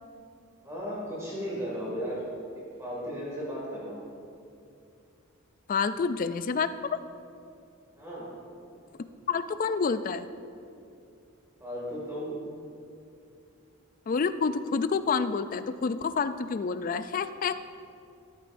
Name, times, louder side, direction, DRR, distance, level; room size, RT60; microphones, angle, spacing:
voice 1, 0.6-2.2 2.5-4.1 8.0-8.4 11.6-12.4, equal, 15° right, -6 dB, 2.3 m, -35 dB
voice 2, 5.7-7.0 9.3-10.3 14.1-17.5, left 5 dB, 40° left, 12 dB, 0.3 m, -28 dB
14.0 x 11.0 x 2.6 m, 2.6 s
head